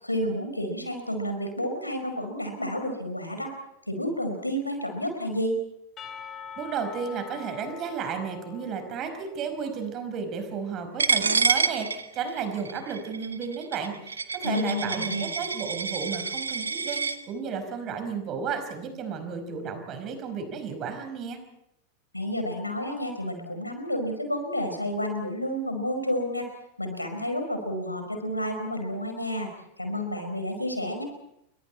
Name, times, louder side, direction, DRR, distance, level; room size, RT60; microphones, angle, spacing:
voice 1, 0.0-3.5 3.9-5.5 14.4-15.3 22.1-26.5 26.8-29.5 29.8-31.0, equal, 85° left, 5 dB, 4.9 m, -30 dB
Percussion / Church bell, 6.0-9.9, left 7 dB, 25° left, 3.2 m, -44 dB
voice 2, 6.6-17.0 17.3-21.4, right 6 dB, 35° right, 7 dB, 5.1 m, -33 dB
Coin (dropping), 11.0-17.2, right 5 dB, 75° right, 1.3 m, -28 dB
29.0 x 24.0 x 4.4 m, 0.82 s
figure-of-eight pair, 90°, 0 cm